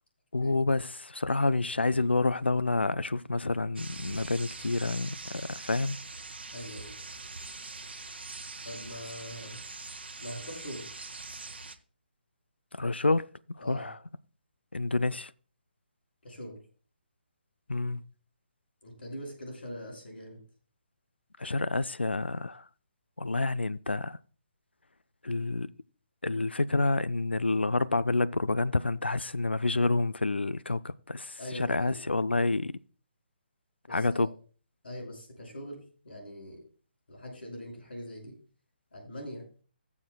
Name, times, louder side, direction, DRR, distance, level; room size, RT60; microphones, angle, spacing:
voice 1, 0.3-6.0 12.7-13.3 13.7-14.0 14.7-15.3 17.7-18.0 21.4-22.6 23.2-24.2 25.2-25.7 26.2-32.7 33.9-34.3, left 3 dB, 90° left, 0.4 m, -28 dB
sound 1, 3.8-11.8, right 3 dB, 75° right, 0.8 m, -43 dB
voice 2, 6.5-6.9 8.6-9.6 10.2-10.9 13.6-13.9 16.2-16.6 18.8-20.4 31.4-32.0 33.9-34.3 34.8-36.6 37.1-38.4 38.9-39.5, equal, 70° left, 5.4 m, -42 dB
21.5 x 7.2 x 2.2 m
figure-of-eight pair, 140°, 6 cm